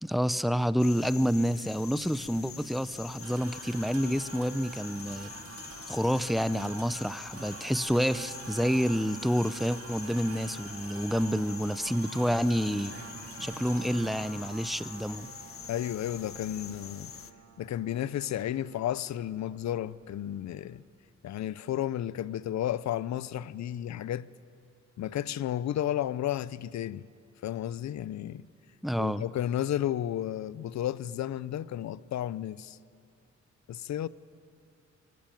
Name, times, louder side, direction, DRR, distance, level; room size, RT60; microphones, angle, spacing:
voice 1, 0.0-5.3 5.9-12.9 13.4-15.3 28.8-29.2, equal, ahead, 0.6 m, -28 dB
sound 1, 0.8-17.3, left 8 dB, 50° left, 1.0 m, -46 dB
sound 2, 3.2-20.8, right 5 dB, 50° right, 3.0 m, -47 dB
voice 2, 15.7-17.1 17.6-20.8 21.2-24.3 25.0-27.1 27.4-28.4 29.0-32.8 33.7-34.1, left 11 dB, 70° left, 0.7 m, -32 dB
24.5 x 23.5 x 9.2 m
wide cardioid pair, 140°, 29 cm